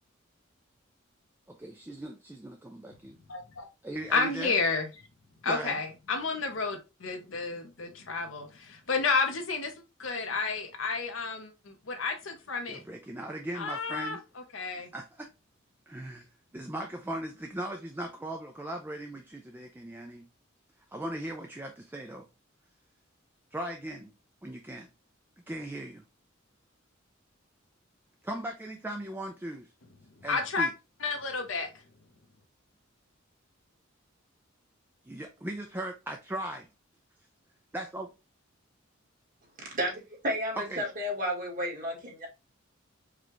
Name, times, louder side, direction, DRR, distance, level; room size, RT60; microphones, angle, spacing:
voice 1, 1.5-3.2 3.8-4.5 5.5-5.8 12.7-14.2 14.8-15.3 15.9-16.3 16.5-20.3 20.9-22.3 23.5-24.1 24.4-24.9 25.5-26.0 28.2-29.7 30.2-30.7 35.0-36.7 37.7-38.1 40.7-40.8, right 1 dB, 10° right, 0.4 m, -38 dB
voice 2, 3.3-3.7 4.1-4.9 5.4-9.7 10.0-12.8 13.5-14.2 14.5-14.9 30.3-30.7 31.0-31.7, left 4 dB, 75° left, 0.9 m, -31 dB
voice 3, 39.7-42.3, equal, 45° right, 1.6 m, -32 dB
4.9 x 2.3 x 3.0 m
head